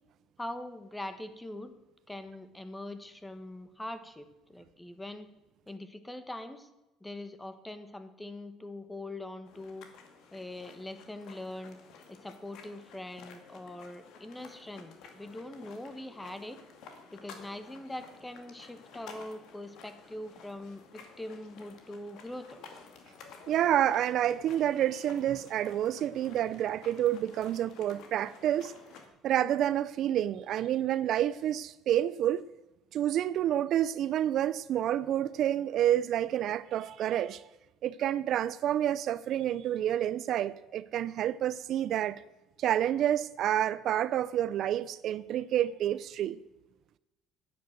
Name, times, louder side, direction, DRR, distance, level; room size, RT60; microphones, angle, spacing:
voice 1, 0.4-1.7 2.1-5.3 5.7-6.7 7.0-9.9 10.3-11.8 12.1-16.6 17.1-22.7, left 1 dB, 10° left, 1.3 m, -42 dB
sound 1, 9.5-29.1, left 5 dB, 70° left, 2.2 m, -52 dB
voice 2, 23.5-28.7 29.2-32.5 32.9-37.4 37.8-42.2 42.6-46.4, right 11 dB, 60° right, 0.4 m, -29 dB
10.0 x 9.2 x 7.9 m
cardioid pair, 115°, 0 cm